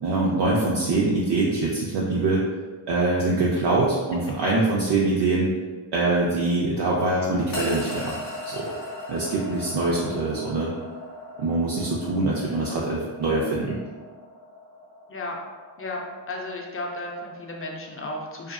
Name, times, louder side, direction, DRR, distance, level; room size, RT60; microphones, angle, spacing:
voice 1, 0.0-2.4 2.9-5.5 5.9-8.2 8.5-8.8 9.1-10.7 11.4-13.8, right 2 dB, 60° right, -4 dB, 0.5 m, -24 dB
sound 1, 7.5-17.9, left 1 dB, 90° left, 0.9 m, -39 dB
voice 2, 12.4-12.7 15.1-15.4 15.8-16.0 16.3-18.5, left 2 dB, 30° left, 0 dB, 0.5 m, -34 dB
2.6 x 2.4 x 2.3 m, 1.4 s
cardioid pair, 70°, 47 cm